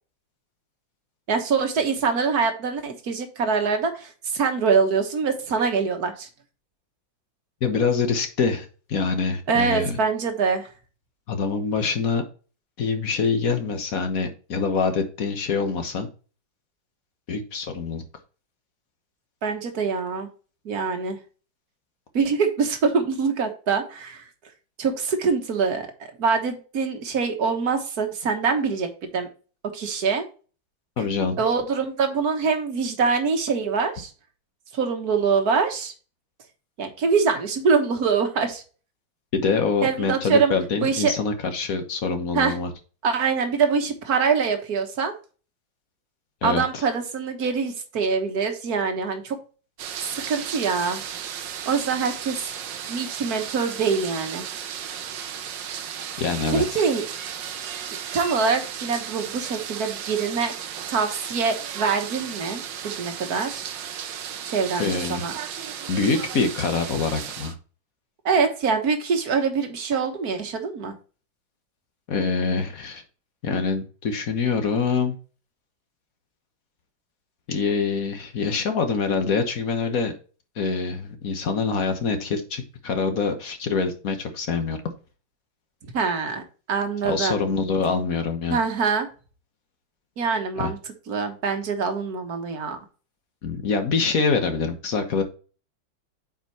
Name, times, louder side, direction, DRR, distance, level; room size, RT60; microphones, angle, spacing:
voice 1, 1.3-6.3 9.5-10.7 19.4-20.3 20.7-21.2 22.1-24.3 24.8-25.9 26.2-29.3 29.7-30.2 31.4-34.1 34.7-35.9 36.8-38.6 39.8-40.5 40.8-41.2 42.4-42.6 43.0-45.1 46.4-49.4 50.3-51.0 51.7-52.5 52.9-54.4 56.5-57.0 58.1-63.8 64.5-65.3 68.3-70.9 85.9-86.4 86.7-87.4 88.5-89.1 90.2-90.8 91.1-92.8, right 5 dB, 55° right, 5 dB, 1.8 m, -24 dB
voice 2, 7.6-10.0 11.3-12.2 12.8-16.1 17.3-18.0 31.0-31.4 39.3-42.7 46.4-46.8 56.2-56.8 64.8-65.2 65.9-67.5 72.1-73.0 73.4-75.2 77.5-80.1 80.6-84.9 87.0-88.6 90.6-90.7 93.4-95.2, left 5 dB, 50° left, 6 dB, 1.5 m, -25 dB
sound 1, 49.8-67.5, right 9 dB, 75° right, 1.5 m, -35 dB
8.8 x 5.1 x 3.0 m, 0.36 s
omnidirectional pair, 2.1 m